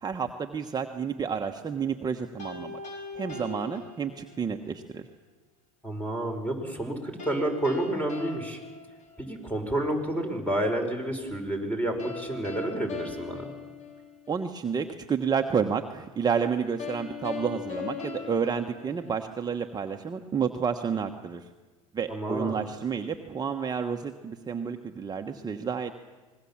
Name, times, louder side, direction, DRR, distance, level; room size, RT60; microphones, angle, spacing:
voice 1, 0.0-2.8 3.2-5.0 14.3-21.4 21.9-25.9, right 6 dB, 25° right, 4 dB, 1.3 m, -30 dB
sound 1, 2.4-4.6 7.2-9.6 12.0-14.5 16.8-19.6, left 4 dB, 45° left, 5.0 m, -40 dB
voice 2, 5.8-8.6 9.2-13.5 22.1-22.6, right 1 dB, 10° left, 4 dB, 5.2 m, -30 dB
25.5 x 20.5 x 7.4 m, 1.3 s
hypercardioid pair, 85°, 17 cm